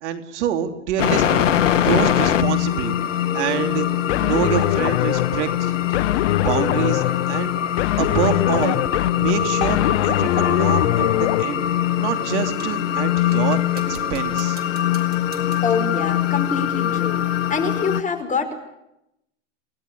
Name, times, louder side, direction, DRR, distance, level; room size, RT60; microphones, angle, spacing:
voice 1, 0.0-1.5 1.8-2.9 3.3-3.9 4.2-5.7 6.3-7.5 8.0-8.8 9.1-11.6 12.0-13.6 13.9-14.6, right 9 dB, 65° right, 7 dB, 3.3 m, -26 dB
sound 1, 1.0-18.0, left 11 dB, 85° left, 1.5 m, -22 dB
sound 2, 4.1-11.4, left 16 dB, 65° left, 0.9 m, -23 dB
sound 3, 12.6-12.9 13.3-15.9, right 7 dB, 25° right, 4.6 m, -45 dB
voice 2, 15.6-17.2 17.5-18.5, left 5 dB, 20° left, 7 dB, 5.1 m, -25 dB
29.0 x 19.0 x 8.5 m, 0.85 s
hypercardioid pair, 115°, 37 cm